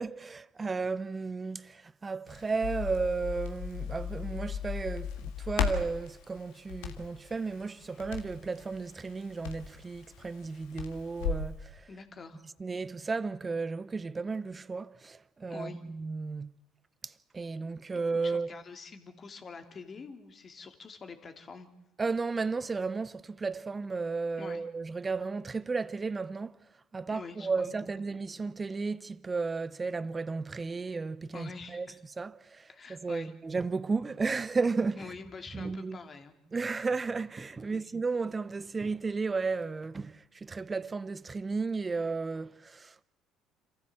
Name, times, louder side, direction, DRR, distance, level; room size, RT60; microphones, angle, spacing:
voice 1, 0.0-11.8 12.6-16.5 17.3-18.5 22.0-26.5 26.9-31.9 32.2-35.0 35.5-36.0 36.5-43.0, right 4 dB, 30° right, 0.8 m, -34 dB
Crackle, 2.3-11.5, left 7 dB, 75° left, 1.8 m, -37 dB
voice 2, 11.9-12.4 15.5-15.8 18.2-21.7 24.4-24.6 27.1-28.2 31.3-32.0 32.7-33.3 35.0-36.3 37.7-37.9, left 4 dB, 40° left, 2.6 m, -46 dB
27.0 x 14.5 x 7.7 m
hypercardioid pair, 65°, 0 cm